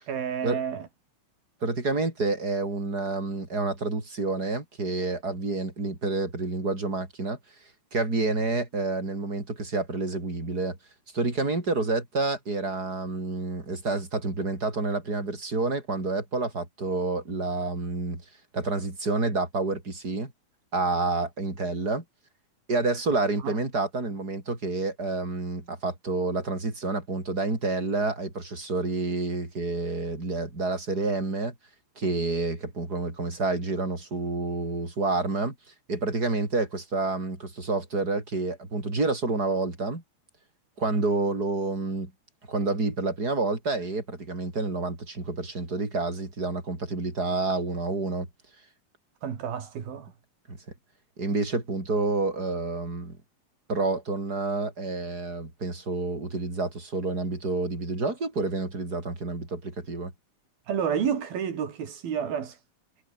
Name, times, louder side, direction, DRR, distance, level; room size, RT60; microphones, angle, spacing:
voice 1, 0.1-0.9 23.4-23.6 49.2-50.1 60.7-62.6, right 8 dB, 80° right, 5.0 m, -30 dB
voice 2, 1.6-7.4 7.9-10.8 11.1-18.2 18.5-20.3 20.7-22.0 22.7-31.5 32.0-35.5 35.9-40.0 40.8-42.1 42.5-48.3 50.5-50.6 51.2-53.2 53.7-60.1, right 3 dB, 25° right, 6.4 m, -29 dB
omnidirectional pair, 4.2 m